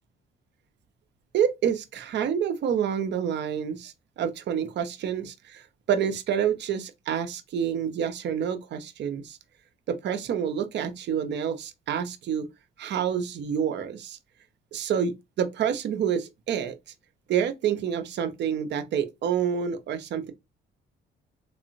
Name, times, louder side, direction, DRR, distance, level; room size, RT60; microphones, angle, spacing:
voice 1, 1.3-9.4 9.9-12.5 12.8-14.2 14.7-16.7 17.3-20.3, right 8 dB, 60° right, 0.6 m, -28 dB
3.6 x 2.0 x 2.5 m
cardioid pair, 90°, 20 cm